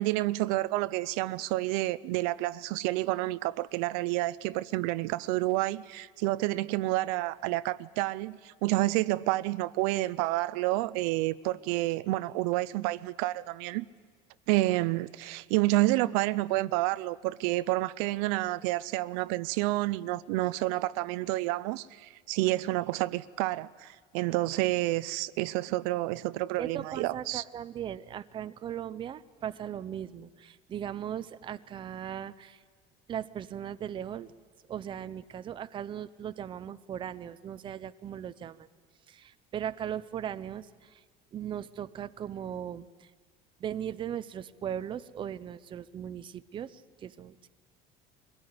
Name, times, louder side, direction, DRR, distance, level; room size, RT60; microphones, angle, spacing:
voice 1, 0.0-13.8 14.5-27.4, right 18 dB, 85° right, 0.6 m, -29 dB
voice 2, 26.6-32.6 33.1-34.3 34.7-38.7 39.1-41.0 41.3-43.1 43.6-47.5, right 9 dB, 25° right, 0.6 m, -38 dB
23.0 x 17.0 x 9.6 m
cardioid pair, 150°, 19 cm